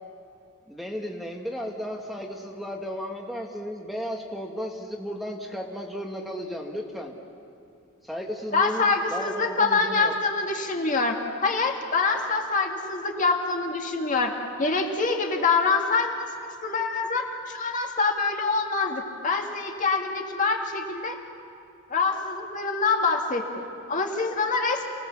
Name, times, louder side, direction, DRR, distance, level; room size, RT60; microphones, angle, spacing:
voice 1, 0.7-7.1 8.0-10.1, equal, ahead, 1 dB, 1.4 m, -34 dB
voice 2, 8.5-11.1 11.4-14.3 14.6-16.3 16.6-21.2 21.9-24.9, left 4 dB, 40° left, 2 dB, 1.9 m, -25 dB
28.5 x 18.0 x 7.0 m, 2.6 s
head